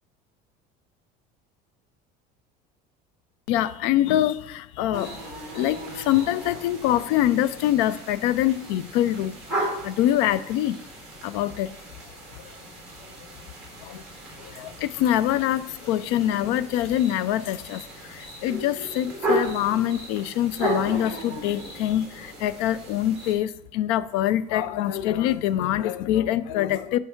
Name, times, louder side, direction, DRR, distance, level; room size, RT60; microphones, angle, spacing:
voice 1, 3.5-5.3 5.5-10.8 11.2-11.7 12.4-12.5 13.8-14.0 14.4-27.0, left 12 dB, 75° left, 0.4 m, -25 dB
sound 1, 4.9-23.3, right 1 dB, 5° right, 2.0 m, -35 dB
5.6 x 5.5 x 4.4 m
cardioid pair, 175°, 20 cm